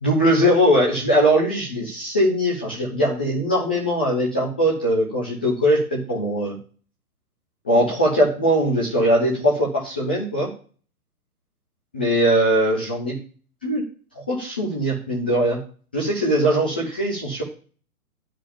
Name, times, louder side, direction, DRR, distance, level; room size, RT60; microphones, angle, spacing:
voice 1, 0.0-6.5 7.6-10.5 11.9-13.2 13.6-13.8 14.1-15.6 15.9-17.4, equal, 5° left, -5 dB, 0.4 m, -20 dB
9.9 x 5.0 x 6.8 m, 0.41 s
hypercardioid pair, 140°, 44 cm